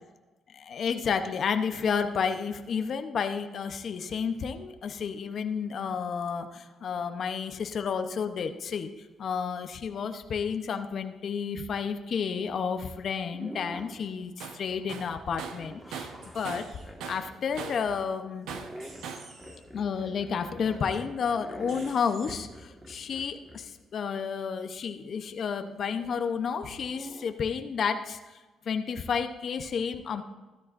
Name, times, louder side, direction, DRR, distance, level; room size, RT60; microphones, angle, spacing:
voice 1, 0.7-8.9 9.2-16.1 16.3-16.7 17.1-18.5 19.5-28.2 28.7-30.2, left 6 dB, 55° left, 7 dB, 0.8 m, -31 dB
sound 1, 12.8-12.9 13.3-14.1 14.7-18.0 18.5-23.7 26.8-27.3, right 1 dB, 10° right, 1.8 m, -46 dB
Tools, 14.4-14.6 14.9-16.8 17.0-17.9 18.5-19.3, right 6 dB, 85° right, 1.0 m, -40 dB
sound 2, 16.2-16.8 18.8-19.6 21.7-22.4, right 3 dB, 65° right, 4.5 m, -50 dB
15.0 x 13.0 x 2.6 m, 1.2 s
cardioid pair, 90°, 0 cm